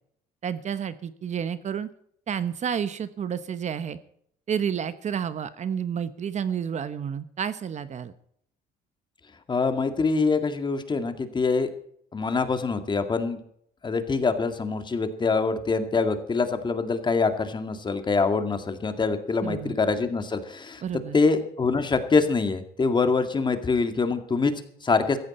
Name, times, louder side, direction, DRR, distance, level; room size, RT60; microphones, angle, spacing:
voice 1, 0.4-1.9 2.3-4.0 4.5-8.1 19.4-19.7 20.8-21.2, right 8 dB, 45° right, 13 dB, 1.0 m, -30 dB
voice 2, 9.5-11.7 12.1-13.4 13.8-20.8 21.1-25.2, left 4 dB, 25° left, 8 dB, 2.1 m, -25 dB
15.5 x 15.0 x 4.3 m, 0.67 s
cardioid pair, 110°, 17 cm